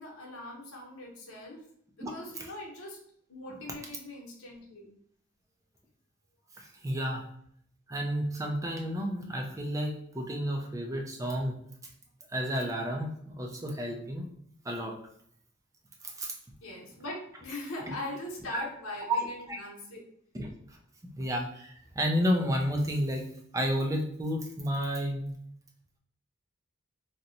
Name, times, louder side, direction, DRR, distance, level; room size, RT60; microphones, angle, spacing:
voice 1, 0.0-1.6 2.0-3.0 3.3-4.9 16.6-20.0, left 1 dB, 75° left, -2 dB, 0.9 m, -41 dB
voice 2, 6.6-7.3 7.9-11.6 12.3-14.3 14.6-15.0 16.0-16.3 17.8-17.9 19.1-19.2 19.5-19.6 20.3-20.8 21.2-23.3 23.5-25.3, equal, 15° right, 1 dB, 0.4 m, -31 dB
2.9 x 2.1 x 3.8 m, 0.67 s
head